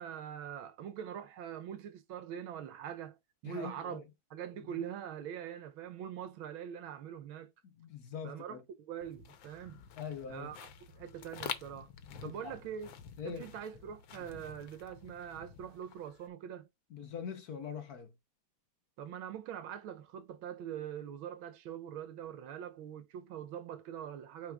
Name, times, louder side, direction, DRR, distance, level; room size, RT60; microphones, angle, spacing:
voice 1, 0.0-3.2 3.4-4.0 4.3-7.5 8.2-9.8 10.3-10.7 11.0-11.9 12.2-12.9 13.2-16.7 19.0-24.5, right 9 dB, 85° right, 1.6 m, -43 dB
voice 2, 3.4-4.1 7.6-8.6 10.0-10.5 12.1-12.6 13.2-13.5 16.9-18.1, left 7 dB, 55° left, 1.4 m, -43 dB
sound 1, 9.0-16.3, left 8 dB, 75° left, 1.6 m, -48 dB
9.1 x 4.7 x 2.4 m
omnidirectional pair, 2.2 m